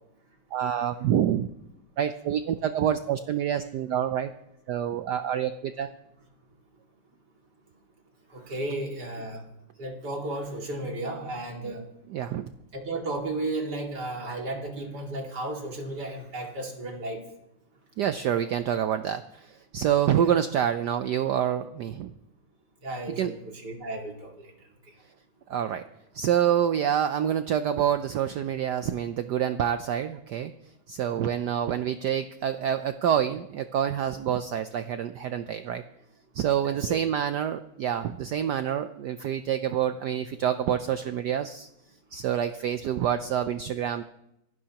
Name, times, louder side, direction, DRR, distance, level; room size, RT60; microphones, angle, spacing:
voice 1, 0.5-1.5 2.0-4.3 4.7-5.9 11.6-11.7 12.1-12.5 18.0-22.1 23.2-23.4 25.5-25.8 26.1-30.5 30.9-35.8 36.3-41.7 42.1-44.0, right 9 dB, 80° right, 9 dB, 0.9 m, -27 dB
voice 2, 8.3-9.4 9.8-11.8 12.7-17.2 22.8-23.3 23.6-24.3 36.6-37.0, right 2 dB, 50° right, 0 dB, 2.8 m, -33 dB
25.0 x 11.0 x 2.9 m, 0.82 s
omnidirectional pair, 2.4 m